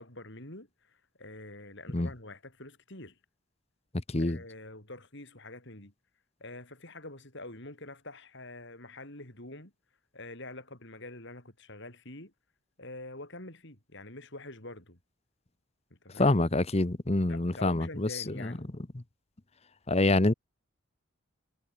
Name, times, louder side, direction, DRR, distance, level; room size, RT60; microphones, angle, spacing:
voice 1, 0.0-3.2 4.2-5.9 6.4-9.7 10.1-12.3 12.8-15.0 15.9-16.4 17.3-18.7, left 2 dB, 55° left, 5.5 m, -46 dB
voice 2, 4.1-4.4 16.2-18.5 19.9-20.3, left 2 dB, 30° left, 0.9 m, -26 dB
head